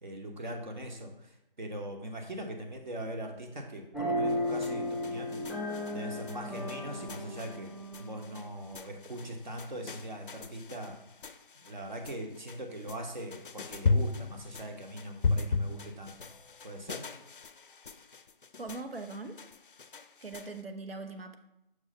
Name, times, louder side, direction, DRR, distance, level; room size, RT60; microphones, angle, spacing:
voice 1, 0.0-11.0 11.6-16.3 16.6-17.1, right 1 dB, 55° right, 3 dB, 1.2 m, -41 dB
sound 1, 3.9-9.4, left 1 dB, ahead, 0.4 m, -35 dB
sound 2, 4.3-20.6, left 4 dB, 65° left, 0.5 m, -37 dB
voice 2, 18.6-19.4 20.2-21.4, right 3 dB, 80° right, 6 dB, 0.9 m, -41 dB
6.3 x 3.1 x 5.4 m, 0.86 s
figure-of-eight pair, 170°, 29 cm